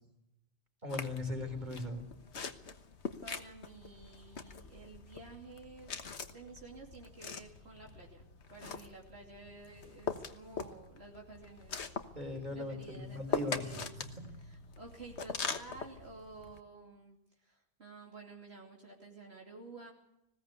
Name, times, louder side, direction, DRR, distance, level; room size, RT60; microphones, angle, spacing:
voice 1, 0.8-2.0 12.1-14.3, left 2 dB, 45° right, 4 dB, 4.5 m, -39 dB
sound 1, 0.9-16.6, left 5 dB, 90° left, 1.6 m, -43 dB
voice 2, 3.2-6.0 6.3-11.9 12.5-14.0 14.4-19.9, right 3 dB, 75° right, -1 dB, 3.1 m, -52 dB
20.0 x 16.5 x 8.2 m, 0.85 s
omnidirectional pair, 1.1 m